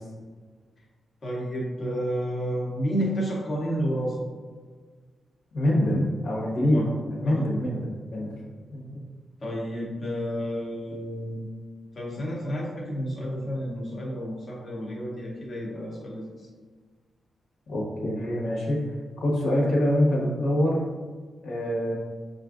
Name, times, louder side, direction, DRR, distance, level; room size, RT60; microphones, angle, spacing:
voice 1, 1.2-4.2 6.7-6.9 7.2-7.4 9.4-11.5 11.9-16.5, equal, 35° left, -4 dB, 0.6 m, -31 dB
voice 2, 5.5-8.3 8.7-9.0 17.7-18.8 19.2-20.8 21.4-21.9, left 1 dB, 80° left, -3 dB, 1.1 m, -25 dB
6.2 x 2.5 x 2.4 m, 1.5 s
wide cardioid pair, 165°, 0 cm